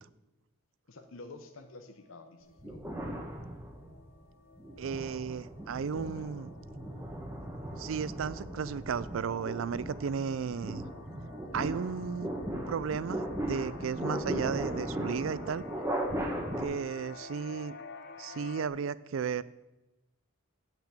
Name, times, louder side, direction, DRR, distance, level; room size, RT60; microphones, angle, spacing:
voice 1, 0.9-2.8 5.9-6.4, left 3 dB, 90° left, 7 dB, 0.9 m, -49 dB
sound 1, 0.9-18.7, left 4 dB, 55° left, 0.8 m, -51 dB
sound 2, 2.6-4.0 4.6-16.6, right 1 dB, 15° right, 1.3 m, -37 dB
voice 2, 4.8-6.5 7.8-10.9 11.5-12.3 12.7-15.6 16.6-17.7 18.2-19.4, right 6 dB, 80° right, 19 dB, 0.4 m, -34 dB
8.9 x 5.9 x 7.5 m, 1.0 s
head